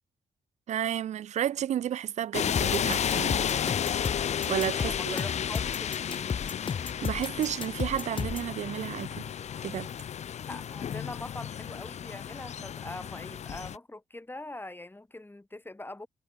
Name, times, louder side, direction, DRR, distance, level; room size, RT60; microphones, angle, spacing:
voice 1, 0.7-3.5 4.5-5.1 6.8-9.2 9.6-9.9, right 10 dB, 75° right, 1.7 m, -32 dB
sound 1, 2.3-13.8, left 9 dB, 65° left, 2.2 m, -32 dB
sound 2, 2.6-8.5, left 5 dB, 45° left, 0.8 m, -33 dB
voice 2, 4.8-6.3 10.5-16.1, left 2 dB, 15° left, 4.0 m, -43 dB
supercardioid pair, 45°, 12 cm